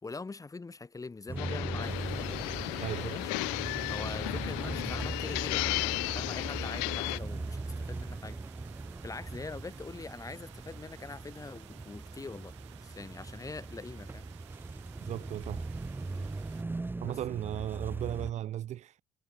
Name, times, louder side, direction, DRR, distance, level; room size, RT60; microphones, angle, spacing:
voice 1, 0.0-2.5 3.0-3.5 3.9-8.4 9.0-14.3 17.0-17.2, left 3 dB, 25° left, 5.5 m, -43 dB
sound 1, 1.3-18.3, right 3 dB, 15° right, 0.8 m, -40 dB
sound 2, 1.4-7.2, left 40 dB or more, 75° left, 1.0 m, -34 dB
sound 3, 1.8-16.6, right 18 dB, 85° right, 1.5 m, -56 dB
voice 2, 2.8-3.2 15.0-15.6 17.0-19.0, right 12 dB, 50° right, 0.8 m, -36 dB
hypercardioid pair, 65°, 15 cm